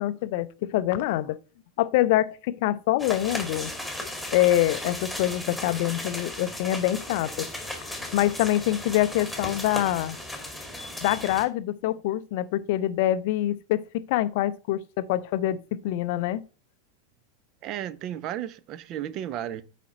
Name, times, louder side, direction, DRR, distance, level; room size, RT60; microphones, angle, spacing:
voice 1, 0.0-1.4 1.8-3.7 4.3-7.5 8.1-10.2 11.0-16.4, left 14 dB, 50° left, 0.5 m, -25 dB
sound 1, 3.0-11.5, left 1 dB, ahead, 1.9 m, -36 dB
voice 2, 17.6-19.6, right 11 dB, 35° right, 0.6 m, -33 dB
8.5 x 5.0 x 4.3 m
figure-of-eight pair, 90°, 0 cm